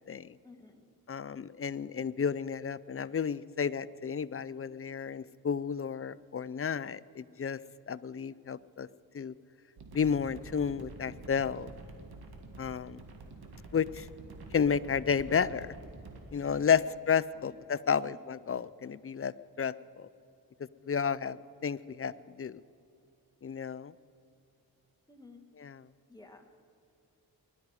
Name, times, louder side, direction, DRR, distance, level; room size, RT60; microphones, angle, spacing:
voice 1, 0.4-0.8 16.8-16.9 17.3-17.4 17.9-18.2 25.1-25.4 26.1-26.6, left 3 dB, 10° left, 3 dB, 1.8 m, -53 dB
voice 2, 1.1-7.6 7.9-8.9 9.1-9.3 9.9-11.7 12.6-13.0 13.7-14.1 14.5-15.7 16.3-20.1 20.6-22.6 23.4-23.9 25.6-25.8, left 6 dB, 40° left, 18 dB, 0.5 m, -32 dB
sound 1, 9.8-16.2, right 2 dB, 85° right, 2.0 m, -48 dB
21.0 x 12.0 x 4.9 m, 2.6 s
cardioid pair, 60°, 37 cm